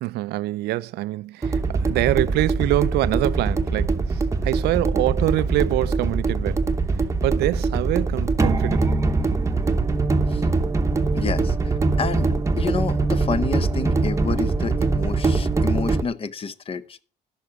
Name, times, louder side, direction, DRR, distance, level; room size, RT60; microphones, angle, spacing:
voice 1, 0.0-6.7 7.2-9.0, right 17 dB, 75° right, 0.4 m, -25 dB
sound 1, 1.4-16.0, right 3 dB, 15° right, 0.9 m, -22 dB
voice 2, 11.1-12.3 12.6-17.0, left 5 dB, 35° left, 0.8 m, -29 dB
13.0 x 5.9 x 6.0 m
cardioid pair, 110°, 17 cm